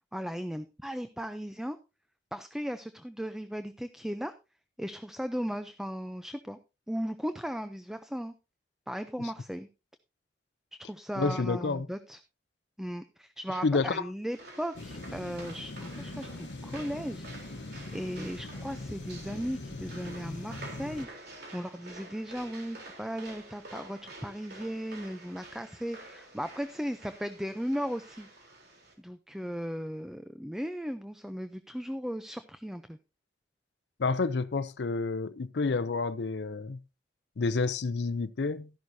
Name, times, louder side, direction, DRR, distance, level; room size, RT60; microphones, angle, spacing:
voice 1, 0.1-1.8 2.3-4.3 4.8-6.6 6.9-8.3 8.9-9.7 10.8-12.2 12.8-17.6 17.9-21.1 21.5-28.3 29.0-33.0, equal, 5° right, 0.5 m, -36 dB
voice 2, 11.2-11.9 13.6-14.1 34.0-36.8 37.4-38.7, left 4 dB, 70° left, 0.6 m, -29 dB
sound 1, 14.3-28.9, right 2 dB, 65° right, 3.5 m, -49 dB
sound 2, 14.7-21.1, left 2 dB, 90° left, 1.0 m, -42 dB
13.0 x 11.0 x 2.7 m
head